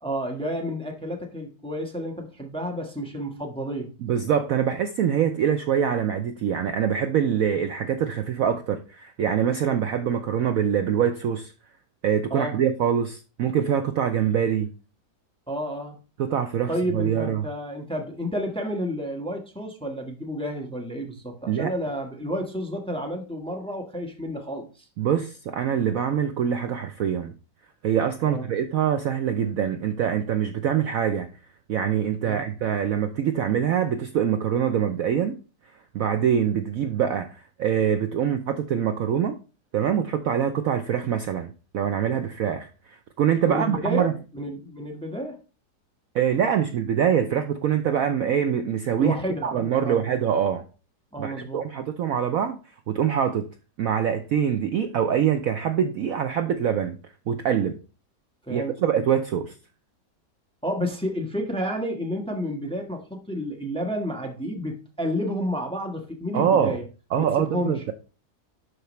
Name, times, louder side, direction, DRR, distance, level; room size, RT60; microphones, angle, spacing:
voice 1, 0.0-3.9 12.3-12.6 15.5-16.0 16.7-24.9 28.3-28.5 32.3-32.5 43.5-45.4 49.0-50.0 51.1-51.6 58.4-58.7 60.6-66.9 67.2-67.8, equal, 5° left, 1.0 m, -30 dB
voice 2, 4.0-11.5 12.0-14.7 16.2-17.4 21.5-21.7 25.0-27.3 27.8-31.3 31.7-35.4 35.9-37.3 37.6-39.4 39.7-44.1 46.1-49.1 49.4-50.6 51.2-52.6 52.9-53.5 53.8-57.0 57.3-57.8 58.5-59.5 66.3-66.8 67.1-67.9, right 8 dB, 70° right, 0.9 m, -24 dB
11.5 x 4.7 x 3.1 m
omnidirectional pair, 1.9 m